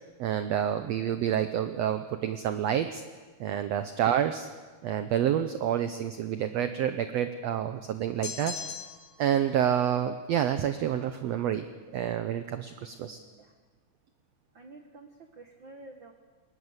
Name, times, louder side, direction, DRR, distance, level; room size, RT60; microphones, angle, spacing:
voice 1, 0.2-3.0 3.4-4.5 4.8-8.5 9.2-11.7 11.9-13.2, right 10 dB, 75° right, 9 dB, 1.6 m, -28 dB
sound 1, 8.2-9.2, left 7 dB, 75° left, 3.2 m, -38 dB
voice 2, 12.7-13.5 14.5-16.1, right 2 dB, 55° right, 4 dB, 1.4 m, -51 dB
20.5 x 19.5 x 8.1 m, 1.4 s
omnidirectional pair, 3.8 m